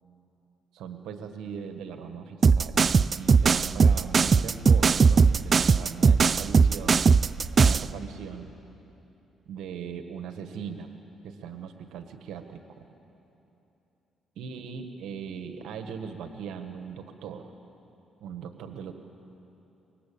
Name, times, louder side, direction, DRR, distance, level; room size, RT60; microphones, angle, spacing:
voice 1, 0.7-2.8 3.1-7.0 7.5-8.5 9.4-10.9 11.2-12.9 14.4-17.5 18.2-18.9, right 7 dB, 85° right, 6 dB, 1.6 m, -39 dB
sound 1, 2.4-7.9, right 5 dB, 40° right, 0.5 m, -19 dB
26.5 x 23.0 x 8.7 m, 2.9 s
cardioid pair, 90°, 0 cm